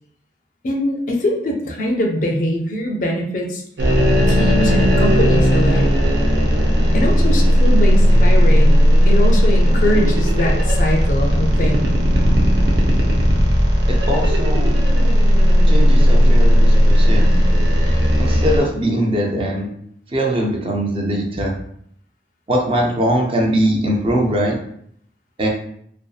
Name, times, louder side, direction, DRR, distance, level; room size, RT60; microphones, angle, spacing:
voice 1, 0.6-3.6 4.3-5.9 6.9-8.8 9.1-11.8, equal, 45° left, 1 dB, 0.4 m, -22 dB
sound 1, 3.8-18.6, equal, 85° right, 0.6 m, -14 dB
voice 2, 13.9-14.7 15.7-17.3 18.2-19.7 20.1-21.5 22.5-24.6 25.4-25.5, equal, 30° right, 0 dB, 0.4 m, -21 dB
2.6 x 2.3 x 2.3 m, 0.67 s
head